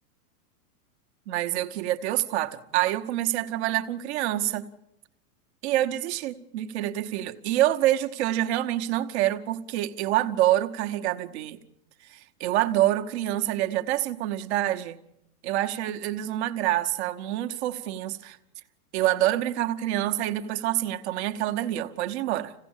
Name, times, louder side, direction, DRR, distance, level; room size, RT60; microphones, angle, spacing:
voice 1, 1.3-4.7 5.6-11.6 12.1-15.0 15.4-18.4 18.9-22.5, right 14 dB, 45° right, 1.2 m, -26 dB
26.0 x 16.5 x 7.3 m
supercardioid pair, 155°, 45 cm